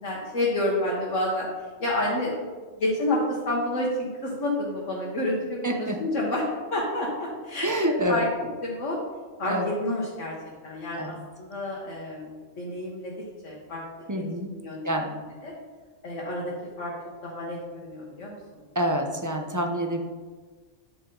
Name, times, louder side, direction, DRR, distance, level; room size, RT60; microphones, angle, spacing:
voice 1, 0.0-2.3 2.8-6.5 6.7-8.3 8.6-9.0 9.4-10.3 10.6-14.1 14.5-15.5 16.0-16.9 17.2-18.4, left 1 dB, 70° left, -4 dB, 1.8 m, -29 dB
voice 2, 5.6-6.0 7.6-8.3 9.4-9.7 10.9-11.2 14.1-14.5 14.8-15.1 18.7-20.0, equal, 15° right, 3 dB, 0.7 m, -27 dB
9.8 x 6.7 x 3.9 m, 1.4 s
omnidirectional pair, 1.3 m